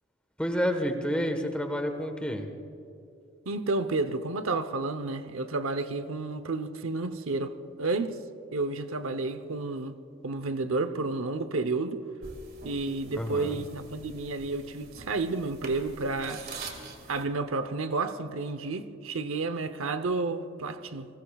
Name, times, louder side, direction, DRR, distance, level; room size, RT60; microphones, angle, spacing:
voice 1, 0.4-2.5 13.1-13.6, equal, 5° left, 5 dB, 1.3 m, -29 dB
voice 2, 3.5-7.5 7.8-8.2 8.5-9.9 10.2-12.0 12.6-16.4 17.1-21.1, right 3 dB, 80° right, 10 dB, 0.8 m, -31 dB
sound 1, 12.2-17.2, right 3 dB, 45° right, 2.1 m, -45 dB
29.5 x 20.5 x 2.4 m, 2.6 s
head